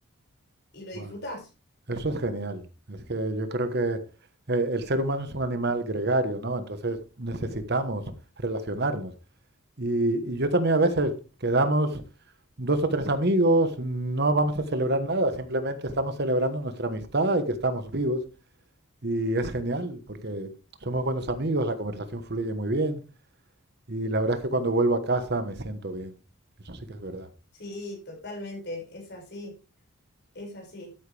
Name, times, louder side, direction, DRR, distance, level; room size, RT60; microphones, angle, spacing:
voice 1, 0.7-1.5 27.6-29.5 30.3-30.9, left 1 dB, 50° left, 5.8 m, -39 dB
voice 2, 1.9-2.6 2.9-4.0 4.5-8.0 8.4-9.1 9.8-11.1 11.4-12.0 12.6-18.2 19.0-20.5 20.8-23.0 23.9-26.1 26.7-27.3, right 2 dB, 50° right, 1.3 m, -26 dB
13.0 x 9.3 x 3.4 m
head